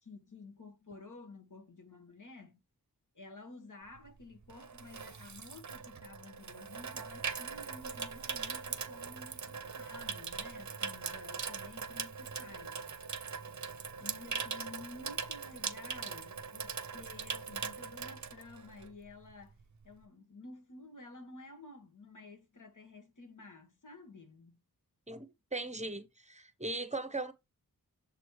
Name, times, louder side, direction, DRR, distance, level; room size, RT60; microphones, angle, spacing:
voice 1, 0.0-2.6 3.1-12.8 14.0-19.5 19.8-24.6, left 3 dB, 55° left, 1.4 m, -52 dB
Water tap faucet / Sink (filling or washing), 4.0-19.0 19.3-19.6, right 5 dB, 50° right, 0.7 m, -41 dB
voice 2, 25.1-27.3, right 2 dB, 20° right, 0.8 m, -39 dB
7.1 x 3.1 x 4.7 m
wide cardioid pair, 80°, 37 cm